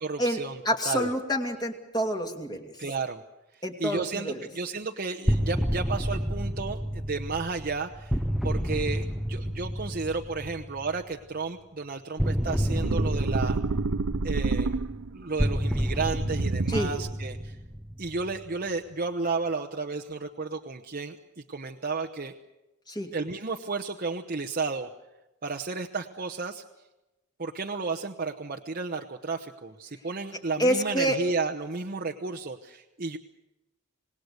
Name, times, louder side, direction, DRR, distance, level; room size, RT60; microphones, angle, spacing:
voice 1, 0.0-1.1 2.8-3.2 3.5-8.2 8.4-13.6 14.2-14.8 15.1-17.5 18.0-21.2 21.5-22.3 23.1-24.9 25.4-26.6 27.4-33.2, right 4 dB, 40° right, 2 dB, 1.0 m, -32 dB
voice 2, 0.6-2.7 3.6-4.4 16.7-16.9 22.9-23.1 30.6-31.2, equal, 20° left, 4 dB, 2.5 m, -27 dB
sound 1, 5.3-11.0 12.2-18.5, equal, ahead, 0.8 m, -30 dB
sound 2, 12.8-15.2 16.2-17.1, right 3 dB, 70° right, 0.7 m, -29 dB
26.5 x 19.5 x 6.7 m, 0.99 s
head